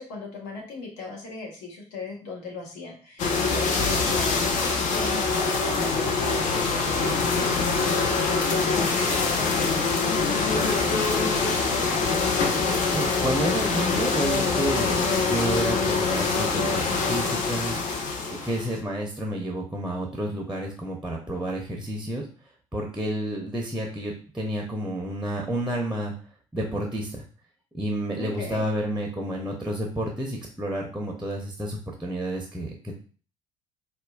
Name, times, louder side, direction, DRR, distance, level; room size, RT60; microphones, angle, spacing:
voice 1, 0.0-11.8 28.2-28.6, left 3 dB, 65° left, 0 dB, 0.9 m, -38 dB
sound 1, 3.2-18.8, left 4 dB, 50° left, 0.5 m, -24 dB
voice 2, 12.9-18.0 18.3-22.3 22.7-26.1 26.5-27.2 27.7-32.7, right 1 dB, 5° right, 0 dB, 0.6 m, -30 dB
4.1 x 2.2 x 2.3 m, 0.40 s
figure-of-eight pair, 50°, 17 cm